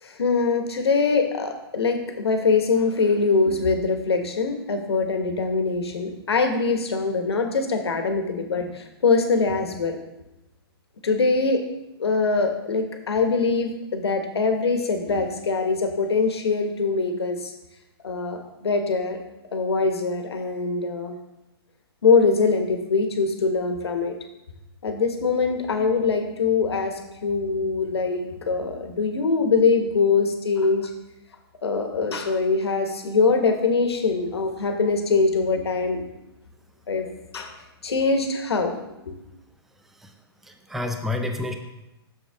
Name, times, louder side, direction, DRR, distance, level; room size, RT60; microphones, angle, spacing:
voice 1, 0.0-10.0 11.0-11.6 12.0-17.5 18.0-19.2 19.5-21.1 22.0-24.1 24.8-30.9 31.6-36.0 36.9-37.1 37.3-37.5 37.8-38.7 39.1-39.2, left 4 dB, 85° left, 5 dB, 1.3 m, -23 dB
voice 2, 40.4-41.5, left 2 dB, ahead, 5 dB, 0.4 m, -29 dB
6.8 x 6.7 x 3.5 m, 0.93 s
hypercardioid pair, 130°, 13 cm